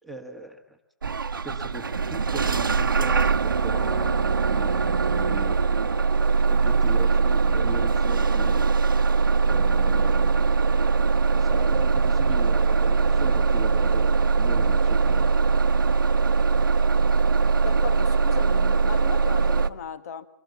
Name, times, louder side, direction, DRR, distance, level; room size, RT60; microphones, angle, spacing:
voice 1, 0.0-0.8 1.4-5.6 6.4-8.6 9.4-10.6 11.3-15.3, right 2 dB, ahead, 1.5 m, -39 dB
Bus / Engine starting, 1.0-19.7, right 4 dB, 85° right, 0.9 m, -21 dB
voice 2, 17.6-20.3, left 7 dB, 50° left, 1.4 m, -36 dB
25.0 x 17.0 x 7.1 m
hypercardioid pair, 145°, 11 cm